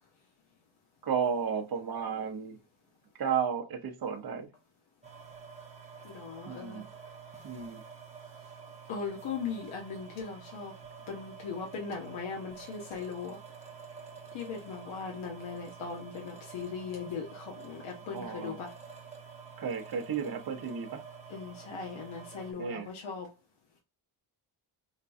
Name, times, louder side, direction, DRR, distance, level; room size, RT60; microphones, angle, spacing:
voice 1, 1.0-2.6 3.1-4.5 6.4-6.8 7.4-7.8 18.1-18.6 19.6-21.0 22.6-22.9, right 7 dB, 50° right, 0.9 m, -33 dB
sound 1, 5.0-22.5, right 6 dB, 15° right, 0.9 m, -49 dB
voice 2, 6.0-6.8 8.9-10.7 11.1-13.4 14.3-18.7 21.3-23.3, left 5 dB, 80° left, 1.0 m, -39 dB
5.1 x 2.3 x 2.6 m
cardioid pair, 90°, 46 cm